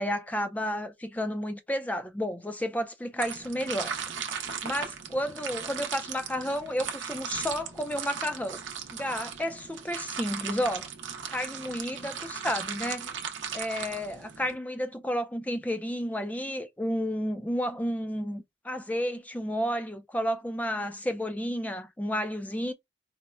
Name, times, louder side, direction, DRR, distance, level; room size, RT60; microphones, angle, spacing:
voice 1, 0.0-3.9 4.6-8.6 9.0-10.9 11.3-13.1 13.5-22.7, equal, 10° left, 0.3 m, -31 dB
sound 1, 3.2-14.5, right 7 dB, 85° right, 0.6 m, -37 dB
4.1 x 2.0 x 2.3 m
head